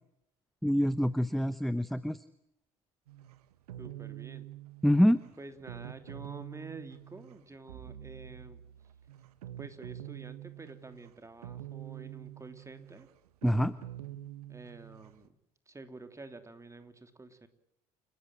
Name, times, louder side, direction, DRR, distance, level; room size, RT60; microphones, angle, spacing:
voice 1, 0.6-2.2 4.8-5.2 13.4-13.7, equal, ahead, 16 dB, 0.9 m, -25 dB
sound 1, 3.1-15.3, right 12 dB, 70° right, 1.4 m, -46 dB
voice 2, 3.8-4.5 5.4-8.7 9.6-13.1 14.5-15.4 15.7-17.5, right 3 dB, 15° right, 9 dB, 3.0 m, -49 dB
29.5 x 14.0 x 8.9 m, 0.83 s
figure-of-eight pair, 65°, 20 cm